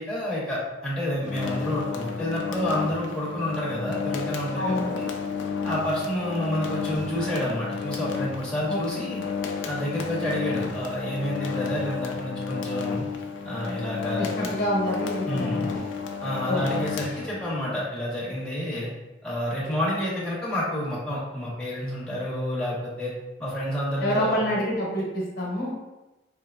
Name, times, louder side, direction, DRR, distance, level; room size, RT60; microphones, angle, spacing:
voice 1, 0.0-5.1 5.6-9.2 9.6-13.1 13.4-14.5 15.3-15.7 16.2-18.9 19.2-23.1 23.4-24.4, equal, 5° left, -7 dB, 0.8 m, -29 dB
sound 1, 1.2-17.7, left 5 dB, 85° left, 0.4 m, -32 dB
voice 2, 4.6-4.9 8.7-9.0 14.2-15.8 16.4-16.8 24.0-25.8, equal, 60° left, -3 dB, 0.9 m, -27 dB
3.6 x 2.8 x 2.3 m, 1.0 s
head